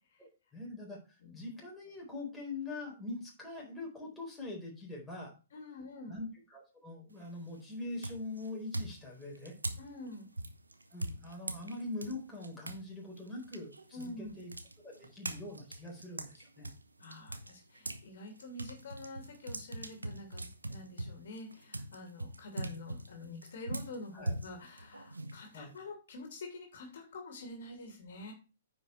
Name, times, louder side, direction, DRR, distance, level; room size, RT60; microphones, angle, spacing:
voice 1, 0.2-5.3 6.1-9.5 10.9-14.5 14.8-16.7 24.1-24.4 25.5-25.7, left 2 dB, 5° left, -4 dB, 4.3 m, -43 dB
voice 2, 5.5-6.2 9.8-10.3 13.9-14.3 17.0-28.3, left 2 dB, 55° left, 3 dB, 2.8 m, -47 dB
sound 1, 7.1-7.5 8.0-12.8 13.2-18.0 18.4-25.8, right 2 dB, 80° right, 1.1 m, -42 dB
9.8 x 5.6 x 4.5 m, 0.32 s
figure-of-eight pair, 115°, 0 cm